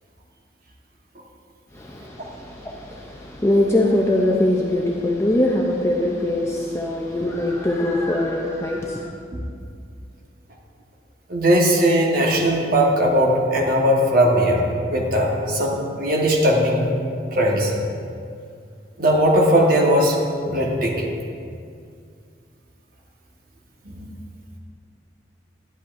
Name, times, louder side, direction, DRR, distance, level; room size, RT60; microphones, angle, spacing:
voice 1, 1.7-9.1, left 1 dB, 15° left, -1 dB, 0.5 m, -22 dB
voice 2, 11.3-16.9 17.3-17.7 19.0-20.2 20.5-21.1 24.0-24.1, equal, 50° right, -1 dB, 1.3 m, -19 dB
11.5 x 11.0 x 2.6 m, 2.3 s
head